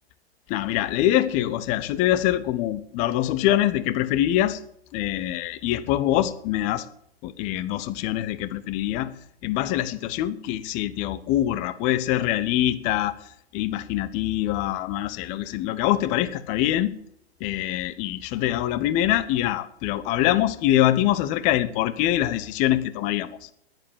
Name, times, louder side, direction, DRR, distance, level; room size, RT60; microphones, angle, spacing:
voice 1, 0.5-4.6 4.9-6.9 7.2-9.1 9.4-13.1 13.5-16.9 17.4-23.5, left 13 dB, 25° left, 15 dB, 0.8 m, -24 dB
12.0 x 10.5 x 8.9 m, 0.71 s
figure-of-eight pair, 115°, 32 cm